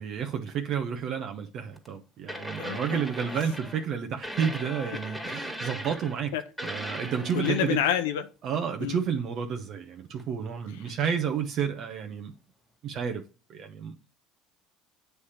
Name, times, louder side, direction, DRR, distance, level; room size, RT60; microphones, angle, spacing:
voice 1, 0.0-6.3 6.6-7.8 8.4-12.3 12.8-13.2 13.5-13.9, right 7 dB, 55° right, 0.9 m, -31 dB
sound 1, 1.7-1.9 2.3-3.8 4.2-6.3 6.6-7.9 10.2-10.3, equal, ahead, 1.9 m, -38 dB
voice 2, 7.3-8.3 8.8-9.0, left 11 dB, 90° left, 0.7 m, -27 dB
8.2 x 3.4 x 5.7 m
supercardioid pair, 90°, 0 cm